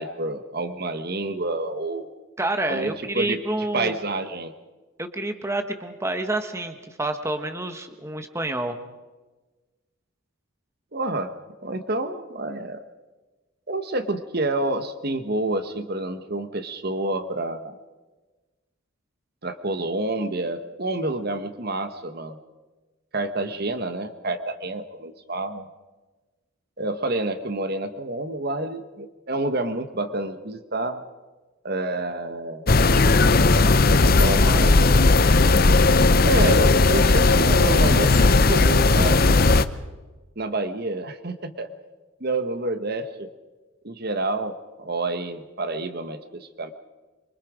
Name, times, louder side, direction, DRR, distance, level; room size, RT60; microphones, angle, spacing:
voice 1, 0.0-2.1 2.7-3.4 3.7-4.5 10.9-11.3 11.6-12.8 13.7-17.7 19.4-22.4 23.1-25.7 26.8-31.1 31.6-32.7 34.2-35.1 36.2-39.3 40.4-41.7 42.2-43.3 43.8-46.7, right 2 dB, 45° right, 9 dB, 1.2 m, -28 dB
voice 2, 2.4-3.9 5.0-8.8, right 2 dB, 15° right, 7 dB, 1.3 m, -28 dB
sound 1, 32.7-39.6, left 3 dB, 45° left, 0.8 m, -17 dB
26.0 x 24.0 x 5.1 m, 1.2 s
head